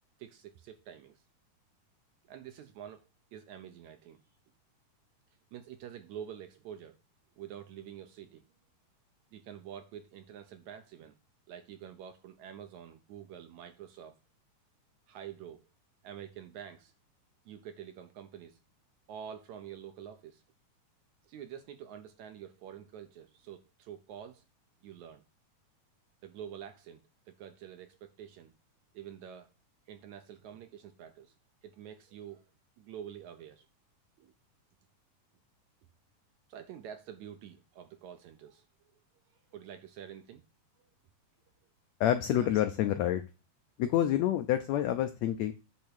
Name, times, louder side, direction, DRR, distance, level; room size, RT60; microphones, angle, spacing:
voice 1, 0.2-1.2 2.3-3.0 3.3-4.2 5.5-7.0 7.4-8.4 9.3-11.2 11.5-14.2 15.1-15.6 16.0-16.9 17.5-18.6 19.1-20.4 21.2-24.4 24.8-25.2 26.2-27.0 27.3-28.5 28.9-29.5 29.9-31.3 31.6-32.5 32.8-33.7 34.2-34.3 36.5-38.7 39.5-40.4 40.8-40.9 42.3-42.6, right 9 dB, 70° right, 1.9 m, -47 dB
voice 2, 42.0-43.2 43.8-45.5, left 11 dB, 80° left, 1.5 m, -28 dB
8.6 x 3.6 x 6.1 m
omnidirectional pair, 3.9 m